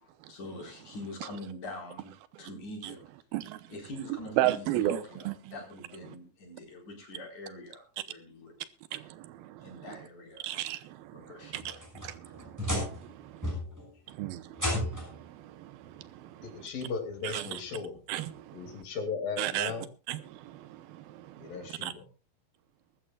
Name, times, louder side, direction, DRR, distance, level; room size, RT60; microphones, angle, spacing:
voice 1, 0.3-2.1 2.4-3.0 3.7-8.5 9.6-10.5 11.1-11.8, left 1 dB, 55° left, 5.9 m, -44 dB
voice 2, 4.4-5.3 8.9-10.0 10.4-11.7 12.0-13.5 14.1-16.5 17.2-17.4 18.1-18.8 19.4-19.7 20.1-21.5 21.8-21.9, right 14 dB, 85° right, 2.7 m, -35 dB
sound 1, 11.5-13.1 13.4-13.9 14.5-15.2 16.4-16.5 17.1-17.2 18.8-18.9, equal, 5° right, 6.0 m, -33 dB
voice 3, 16.4-18.0 18.5-19.9 21.4-22.1, left 5 dB, 70° left, 4.2 m, -37 dB
22.5 x 13.0 x 2.4 m
omnidirectional pair, 4.2 m